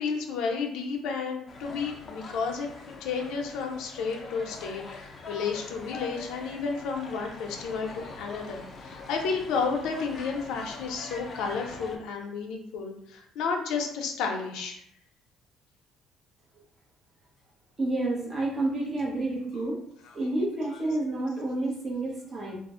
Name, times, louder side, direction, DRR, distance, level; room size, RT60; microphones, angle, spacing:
voice 1, 0.0-14.8 20.0-20.1 20.7-20.8, left 5 dB, 80° left, 2 dB, 0.5 m, -32 dB
sound 1, 1.5-12.0, left 3 dB, 35° left, 0.5 m, -43 dB
voice 2, 17.8-19.8 20.1-22.6, right 2 dB, 30° right, -3 dB, 0.9 m, -29 dB
2.4 x 2.0 x 3.6 m, 0.70 s
cardioid pair, 115°, 0 cm